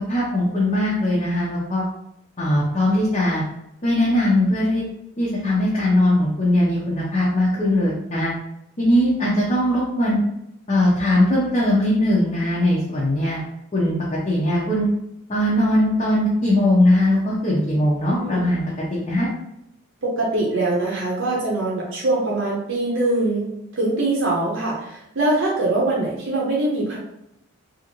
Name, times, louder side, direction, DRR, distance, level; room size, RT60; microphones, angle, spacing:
voice 1, 0.1-1.8 2.4-3.4 3.8-4.8 5.2-8.3 8.8-10.2 10.7-13.4 13.7-13.9 14.3-14.9 15.3-18.6 18.9-19.3, left 1 dB, 30° left, -6 dB, 0.6 m, -20 dB
voice 2, 20.0-27.0, right 2 dB, 60° right, -4 dB, 0.7 m, -23 dB
2.7 x 2.5 x 2.9 m, 0.81 s
head